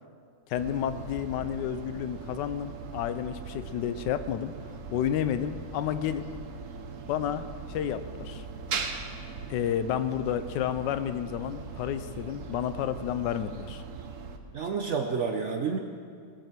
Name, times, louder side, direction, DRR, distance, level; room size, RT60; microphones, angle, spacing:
voice 1, 0.5-4.5 4.9-6.3 7.1-8.4 9.5-13.8, left 10 dB, 70° left, 12 dB, 1.1 m, -31 dB
sound 1, 0.5-14.4, right 5 dB, 55° right, 0.9 m, -40 dB
voice 2, 14.5-15.8, right 5 dB, 85° right, 3 dB, 0.6 m, -29 dB
18.0 x 8.1 x 6.1 m, 2.2 s
omnidirectional pair, 2.3 m